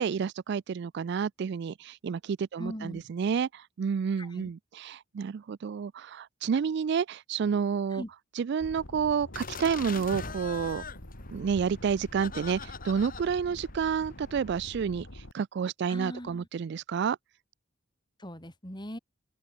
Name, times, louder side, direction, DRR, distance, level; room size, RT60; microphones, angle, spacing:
voice 1, 0.0-8.0 8.4-10.8 11.3-17.2, right 6 dB, 60° right, 0.3 m, -30 dB
voice 2, 2.6-3.0 4.2-4.5 7.9-8.1 15.9-16.5 18.2-19.0, equal, 25° left, 6.9 m, -40 dB
sound 1, 8.6-15.3, left 1 dB, 80° left, 3.8 m, -46 dB
sound 2, 9.3-14.5, left 5 dB, 45° left, 7.0 m, -43 dB
open air
head